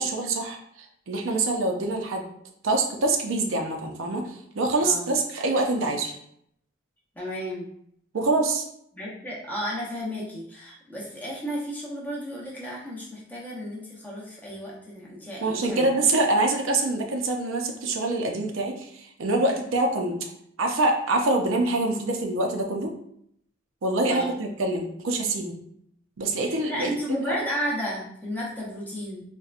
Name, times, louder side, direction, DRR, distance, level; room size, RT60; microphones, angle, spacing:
voice 1, 0.0-2.2 2.6-6.1 8.1-8.6 15.4-20.3 20.6-22.9 23.8-25.5 26.2-26.9 27.3-27.4, right 2 dB, 75° right, 3 dB, 0.5 m, -25 dB
voice 2, 7.1-7.7 8.9-15.9 24.1-24.3 26.5-29.2, equal, 10° left, -5 dB, 0.7 m, -33 dB
4.1 x 2.2 x 2.4 m, 0.71 s
head